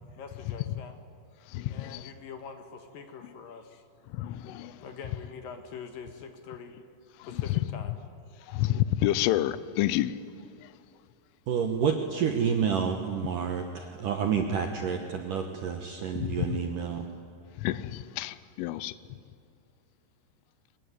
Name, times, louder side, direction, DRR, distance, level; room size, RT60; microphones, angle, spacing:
voice 1, 0.2-1.0 1.7-3.8 4.8-6.7 7.2-8.0, left 6 dB, 65° left, 2.5 m, -44 dB
voice 2, 1.5-2.0 4.1-4.8 8.5-10.2 16.2-16.4 17.6-18.9, left 14 dB, 90° left, 3.3 m, -29 dB
voice 3, 11.5-17.1, right 7 dB, 70° right, 2.0 m, -29 dB
24.5 x 21.0 x 9.6 m
omnidirectional pair, 5.5 m